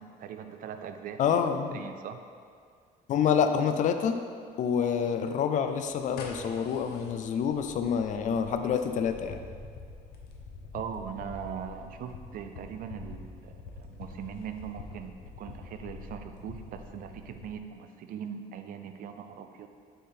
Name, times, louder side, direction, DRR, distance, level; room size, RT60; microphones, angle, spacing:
voice 1, 0.0-1.4 1.7-2.2 10.7-19.7, right 8 dB, 60° right, 7 dB, 0.5 m, -40 dB
voice 2, 1.2-1.8 3.1-4.3 4.6-9.4, left 7 dB, 50° left, 7 dB, 0.5 m, -27 dB
sound 1, 5.9-17.6, left 4 dB, 80° left, 0.9 m, -46 dB
8.2 x 3.8 x 4.4 m, 2.1 s
cardioid pair, 135°, 16 cm